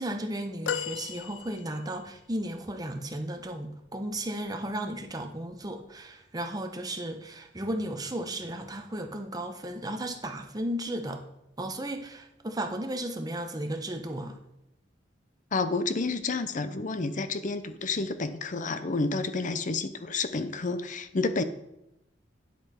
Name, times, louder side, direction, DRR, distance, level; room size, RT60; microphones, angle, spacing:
voice 1, 0.0-11.2 11.6-14.4, right 1 dB, 20° right, 5 dB, 1.0 m, -34 dB
sound 1, 0.7-2.1 2.8-2.9, left 8 dB, 90° left, 0.4 m, -35 dB
voice 2, 15.5-21.4, left 3 dB, 45° left, 11 dB, 0.7 m, -30 dB
9.7 x 7.9 x 4.3 m, 0.86 s
head